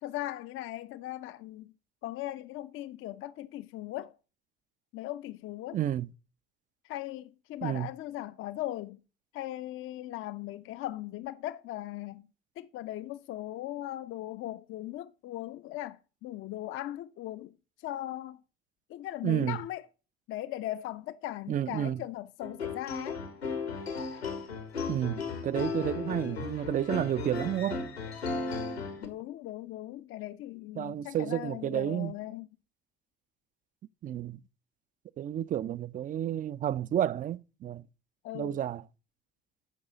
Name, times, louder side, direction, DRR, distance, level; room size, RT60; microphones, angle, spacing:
voice 1, 0.0-1.7 2.0-4.2 4.9-5.8 6.8-9.0 9.3-12.3 12.6-17.6 17.8-18.4 18.9-19.8 20.3-23.2 29.0-32.5 38.2-38.6, left 14 dB, 40° left, 0.6 m, -39 dB
voice 2, 5.7-6.1 7.6-7.9 19.2-19.6 21.5-22.0 24.9-27.8 30.8-32.1 34.0-34.4 35.2-37.8 38.3-38.8, right 11 dB, 25° right, 0.4 m, -31 dB
sound 1, 22.4-29.1, left 4 dB, 85° left, 1.6 m, -35 dB
13.5 x 5.4 x 3.9 m
figure-of-eight pair, 60°, 31 cm